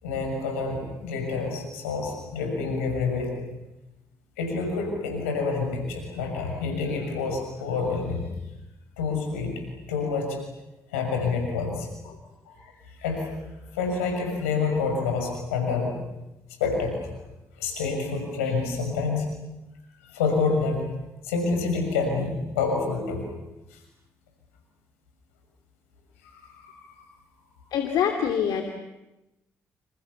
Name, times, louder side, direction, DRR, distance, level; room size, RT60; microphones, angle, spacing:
voice 1, 0.0-3.3 4.4-8.3 9.0-9.5 9.9-10.4 10.9-11.9 12.4-12.5 12.8-13.4 13.7-16.0 16.6-17.0 17.6-19.3 20.0-20.8 21.2-23.3 23.7-23.8 26.3-27.0, left 4 dB, 90° left, 3 dB, 6.5 m, -28 dB
voice 2, 27.7-28.6, left 8 dB, 70° left, 4 dB, 2.8 m, -25 dB
29.5 x 28.0 x 7.1 m, 0.96 s
hypercardioid pair, 45°, 7 cm